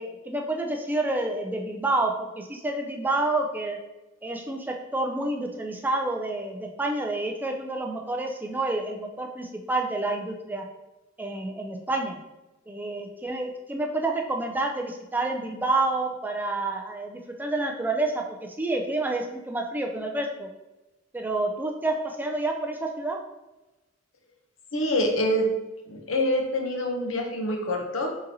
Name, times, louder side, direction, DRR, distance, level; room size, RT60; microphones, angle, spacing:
voice 1, 0.0-3.8 4.2-10.6 11.2-12.2 12.7-20.5 21.1-23.2, right 2 dB, 10° right, 2 dB, 0.3 m, -29 dB
voice 2, 24.7-25.5 25.9-28.1, left 1 dB, 80° left, 2 dB, 0.7 m, -26 dB
3.9 x 3.9 x 2.7 m, 1.0 s
head